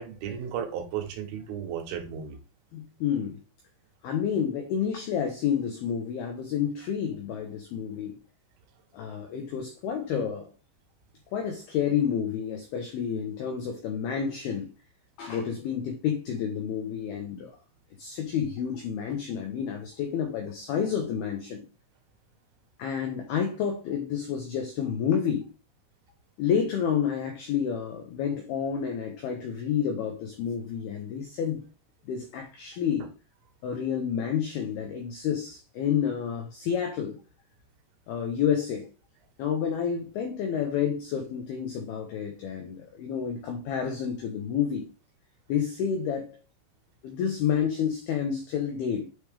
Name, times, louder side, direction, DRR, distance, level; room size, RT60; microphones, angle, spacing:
voice 1, 0.0-2.4, right 8 dB, 80° right, 3.5 m, -34 dB
voice 2, 2.7-3.4 4.0-8.2 8.9-10.5 11.3-14.7 15.2-17.5 18.0-21.7 22.8-25.5 26.4-31.6 32.1-33.1 33.6-37.2 38.1-38.9 39.4-44.9 45.5-46.4 47.0-49.1, left 8 dB, 85° left, 2.2 m, -29 dB
9.7 x 3.3 x 3.4 m
omnidirectional pair, 5.7 m